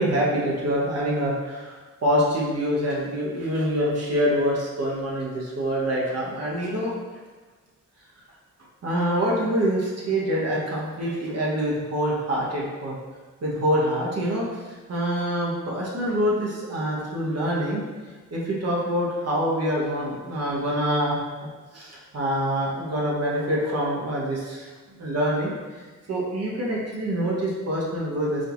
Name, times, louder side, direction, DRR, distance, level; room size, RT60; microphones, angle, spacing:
voice 1, 0.0-6.9 8.8-12.9 13.4-14.5 14.9-17.8 18.3-21.2 21.7-24.7 25.0-25.5 26.1-28.5, equal, 50° right, -5 dB, 1.2 m, -25 dB
5.6 x 3.3 x 2.6 m, 1.3 s
cardioid pair, 75°, 31 cm